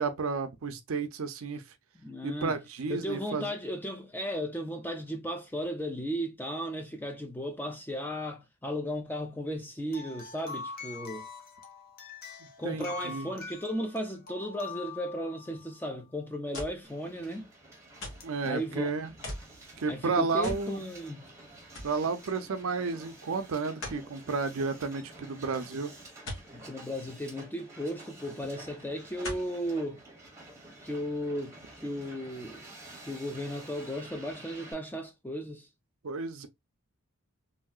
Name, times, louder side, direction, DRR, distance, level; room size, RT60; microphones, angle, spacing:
voice 1, 0.0-1.6 2.2-3.5 12.6-13.3 18.2-19.1 19.8-20.8 21.8-25.9 36.0-36.5, right 4 dB, 70° right, 0.5 m, -32 dB
voice 2, 1.9-2.6 2.9-11.3 12.6-17.5 18.4-18.9 19.9-21.2 26.5-30.0 30.8-32.6 33.0-35.7, equal, 10° left, 0.5 m, -35 dB
sound 1, 9.9-15.9 18.2-18.3 19.3-19.4, left 4 dB, 45° left, 0.8 m, -44 dB
sound 2, 16.5-16.9 18.0-18.3 19.2-19.5 20.4-20.7 21.1-21.2 21.7-22.0 23.8-24.1 26.3-26.5 28.0-28.1 29.2-29.5 30.2-30.3, left 1 dB, 60° left, 1.3 m, -39 dB
Hiss, 16.8-34.7, right 2 dB, 15° right, 0.9 m, -50 dB
3.1 x 2.7 x 2.2 m
head